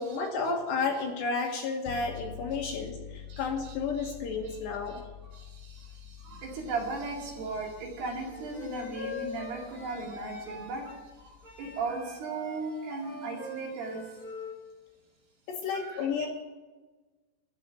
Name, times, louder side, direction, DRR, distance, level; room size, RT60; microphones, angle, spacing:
voice 1, 0.0-5.0 15.5-16.3, left 4 dB, 70° left, 1 dB, 3.0 m, -32 dB
sound 1, 1.9-12.0, left 10 dB, 85° left, 2.8 m, -48 dB
voice 2, 3.3-4.1 4.4-4.6 4.9-5.0 5.3-14.2 15.7-16.3, right 3 dB, 60° right, -1 dB, 3.9 m, -37 dB
Wind instrument woodwind instrument, 8.3-11.0 11.4-14.5, left 2 dB, 5° left, 0.9 m, -42 dB
12.0 x 7.0 x 9.7 m, 1.3 s
omnidirectional pair, 5.9 m